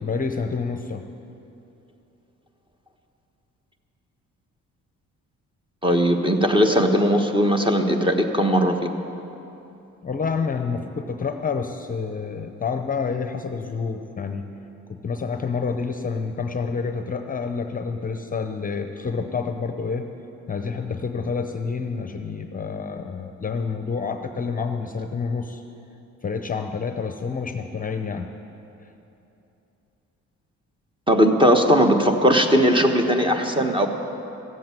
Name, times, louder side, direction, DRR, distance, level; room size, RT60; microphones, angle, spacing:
voice 1, 0.0-1.0 10.0-14.5 14.9-20.1 20.5-25.6 26.2-28.3 28.8-28.9, left 5 dB, 30° left, 7 dB, 0.7 m, -28 dB
voice 2, 5.8-8.9 31.1-33.9, equal, 15° right, 4 dB, 1.2 m, -19 dB
14.0 x 7.8 x 9.0 m, 2.9 s
cardioid pair, 90°, 30 cm